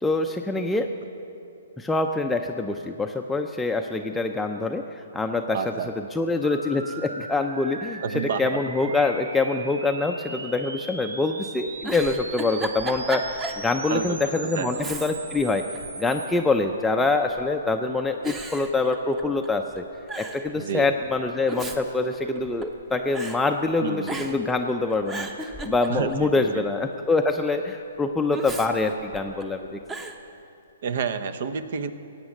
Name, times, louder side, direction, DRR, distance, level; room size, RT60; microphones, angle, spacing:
voice 1, 0.0-0.9 1.8-15.6 16.0-19.8 20.2-29.8, left 3 dB, 5° left, 3 dB, 0.5 m, -25 dB
voice 2, 5.5-5.9 8.0-8.6 8.9-9.0 13.9-14.7 20.6-20.9 23.8-24.3 25.9-26.6 30.8-31.9, right 6 dB, 60° right, 11 dB, 0.9 m, -30 dB
sound 1, 6.4-16.3, right 3 dB, 90° right, 1.0 m, -39 dB
Giggle, 11.7-13.7 14.1-14.2 14.7-15.4 15.8-16.6 17.3-17.7 18.2-19.5 19.7-19.8 20.1-20.5 21.3-22.8 23.1-23.4 24.0-24.5 24.9-26.3 28.3-29.4 29.9-30.2, right 2 dB, 15° right, 0.9 m, -35 dB
16.0 x 8.8 x 7.2 m, 2.6 s
hypercardioid pair, 140°, 0 cm